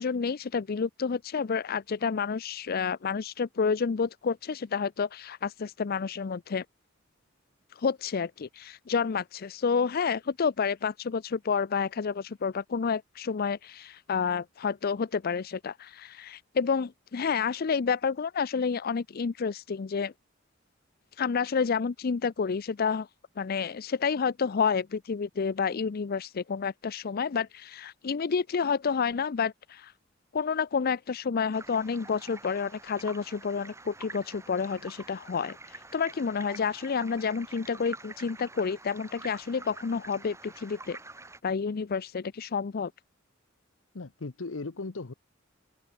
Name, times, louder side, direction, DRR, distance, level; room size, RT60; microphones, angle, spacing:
voice 1, 0.0-6.6 7.7-20.1 21.2-23.1 23.4-29.9 30.3-41.0 41.4-42.9, left 5 dB, 50° left, 0.5 m, -29 dB
sound 1, 31.5-41.4, right 2 dB, 15° right, 2.8 m, -47 dB
voice 2, 43.9-45.1, left 3 dB, 80° left, 0.9 m, -37 dB
head